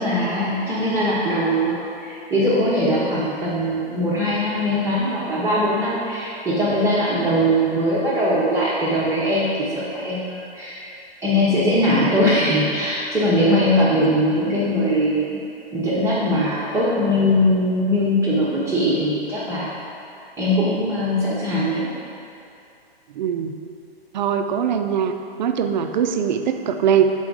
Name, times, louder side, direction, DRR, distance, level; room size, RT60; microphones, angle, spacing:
voice 1, 0.0-10.8 11.2-15.3 15.7-19.7 20.4-21.9, equal, 10° right, -10 dB, 0.7 m, -21 dB
voice 2, 23.1-23.5 24.1-25.1 25.4-27.1, right 8 dB, 45° right, 7 dB, 0.4 m, -21 dB
5.7 x 4.5 x 3.8 m, 2.6 s
hypercardioid pair, 125°, 32 cm